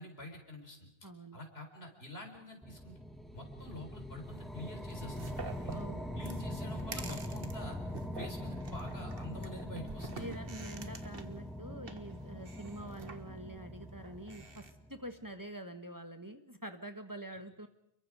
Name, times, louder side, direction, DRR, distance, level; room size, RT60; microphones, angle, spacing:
voice 1, 0.0-0.9 1.3-3.0 3.3-5.7 6.1-7.8 8.1-10.3, left 1 dB, 70° left, 3 dB, 4.8 m, -47 dB
voice 2, 1.0-1.4 5.7-6.1 10.2-14.6 14.9-17.7, right 1 dB, 20° right, 7 dB, 1.4 m, -46 dB
sound 1, 2.6-15.1, left 1 dB, ahead, 2.3 m, -42 dB
sound 2, 4.9-14.7, right 4 dB, 60° right, 1.8 m, -48 dB
29.5 x 22.5 x 5.0 m, 0.78 s
omnidirectional pair, 1.1 m